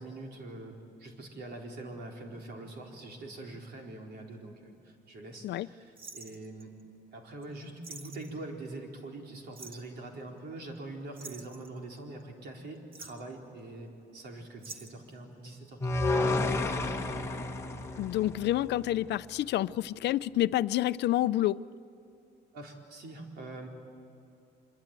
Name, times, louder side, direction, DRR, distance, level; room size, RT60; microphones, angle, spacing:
voice 1, 0.0-6.7 7.1-16.7 22.5-23.7, right 2 dB, 65° right, 1 dB, 4.3 m, -44 dB
sound 1, 6.0-6.8 7.4-7.5 7.8-8.4 9.5-9.9 11.1-12.2 12.7-13.3 14.6-15.1 16.2-16.5 16.8-16.9, right 3 dB, 30° right, 1.4 m, -47 dB
sound 2, 15.8-19.0, left 2 dB, 15° left, 1.3 m, -31 dB
voice 2, 18.0-21.6, left 14 dB, 70° left, 15 dB, 0.5 m, -28 dB
25.0 x 23.5 x 9.1 m, 2.7 s
cardioid pair, 180°, 18 cm